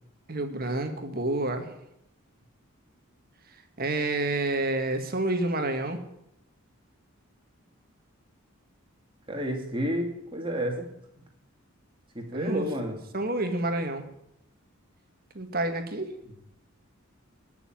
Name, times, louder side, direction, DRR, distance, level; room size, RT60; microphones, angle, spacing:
voice 1, 0.3-1.7 3.8-6.0 12.3-12.7 13.1-14.0 15.3-16.1, right 2 dB, 45° right, 6 dB, 2.0 m, -28 dB
voice 2, 9.3-10.9 12.1-13.0, equal, 25° right, 2 dB, 2.8 m, -30 dB
20.5 x 7.1 x 8.9 m, 0.80 s
head